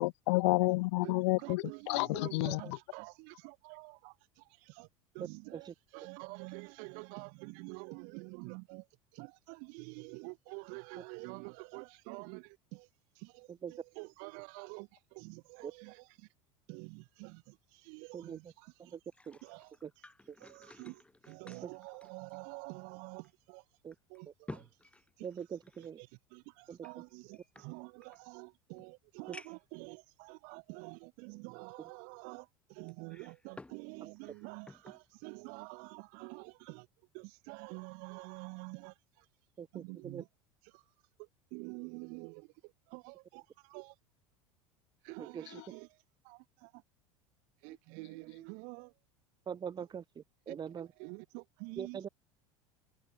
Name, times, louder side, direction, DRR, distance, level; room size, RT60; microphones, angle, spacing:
voice 1, 0.0-2.6, left 24 dB, 55° left, 0.5 m, -30 dB
voice 2, 1.0-4.9 5.1-8.9 9.1-12.9 13.1-16.3 16.7-19.0 19.4-19.7 20.4-23.6 24.1-24.7 25.2-25.3 25.8-36.9 37.1-39.3 39.7-40.3 40.6-40.8 41.2-44.0 45.0-46.0 46.2-46.8 47.6-48.9 50.5-52.1, right 36 dB, 50° right, 2.8 m, -48 dB
sound 1, 18.9-22.9 23.2-23.3 23.9-25.9 26.8-28.2 28.8-28.9 29.3-29.8 30.5-30.6 32.9-33.8 34.2-35.0 35.5-35.7, left 2 dB, 5° left, 1.0 m, -53 dB
voice 3, 25.2-26.0 26.7-26.8 39.6-40.2 45.2-45.6 49.5-50.9 51.8-52.1, right 7 dB, 25° right, 1.4 m, -42 dB
figure-of-eight pair, 75°, 18 cm